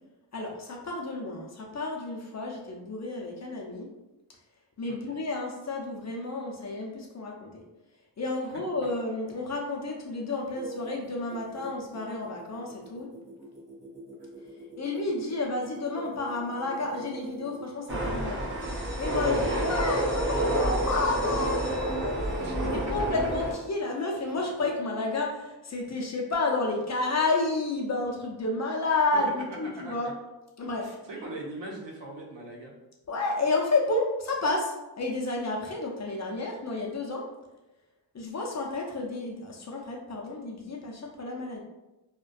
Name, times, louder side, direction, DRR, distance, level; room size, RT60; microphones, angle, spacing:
voice 1, 0.3-3.9 4.8-7.6 8.2-13.1 14.8-18.5 19.0-22.4 22.7-30.1 30.6-31.0 33.1-37.2 38.1-41.6, left 2 dB, 40° left, -1 dB, 0.5 m, -31 dB
voice 2, 4.9-5.2 19.3-19.4 22.4-22.8 29.8-30.1 30.8-32.7, right 2 dB, 80° right, -2 dB, 0.7 m, -41 dB
sound 1, 10.3-18.1 18.6-20.2 20.7-21.0 21.2-21.5 21.8-22.8 23.2-25.0, right 2 dB, 60° right, 1.1 m, -45 dB
sound 2, 17.9-23.5, right 1 dB, 30° right, 0.6 m, -29 dB
sound 3, 18.6-24.3, left 1 dB, 5° left, 0.9 m, -49 dB
2.3 x 2.2 x 2.5 m, 1.0 s
wide cardioid pair, 105°, 43 cm